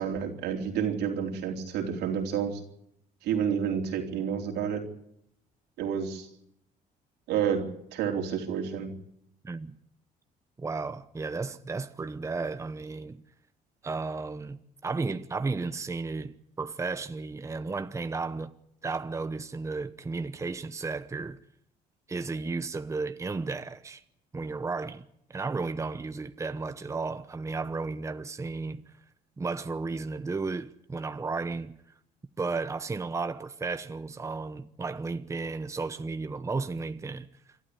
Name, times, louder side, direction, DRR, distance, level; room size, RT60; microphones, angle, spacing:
voice 1, 0.0-2.6 3.2-4.8 5.8-6.3 7.3-8.9, right 8 dB, 85° right, 3.9 m, -29 dB
voice 2, 9.4-9.8 10.6-13.2 13.8-18.5 18.8-21.4 22.1-24.0 24.3-25.0 25.3-28.8 29.4-31.8 32.4-37.3, right 4 dB, 15° right, 0.9 m, -33 dB
27.5 x 12.5 x 9.9 m
cardioid pair, 110°, 17 cm